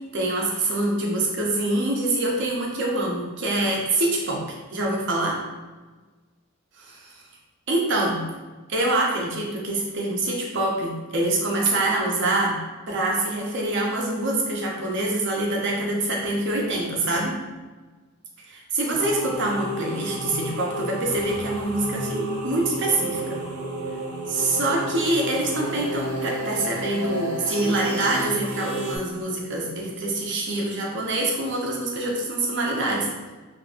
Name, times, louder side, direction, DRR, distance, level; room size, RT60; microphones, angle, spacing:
voice 1, 0.1-4.4 4.7-5.4 6.8-7.1 7.7-8.2 8.7-12.6 12.9-17.4 18.7-23.4 24.3-33.1, right 2 dB, 50° right, -2 dB, 0.7 m, -25 dB
sound 1, 18.9-29.0, right 1 dB, 90° right, 0.7 m, -31 dB
2.8 x 2.5 x 3.6 m, 1.3 s
head